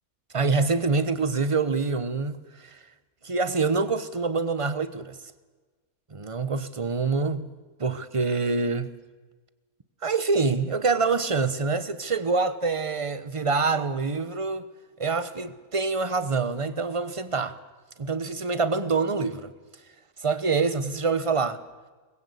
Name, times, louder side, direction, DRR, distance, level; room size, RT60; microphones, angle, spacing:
voice 1, 0.3-2.8 3.2-5.2 6.1-7.5 7.8-8.9 10.0-14.7 15.0-17.6 18.0-19.5 20.2-21.6, right 4 dB, 25° right, 1.0 m, -26 dB
24.0 x 21.0 x 8.3 m
omnidirectional pair, 1.6 m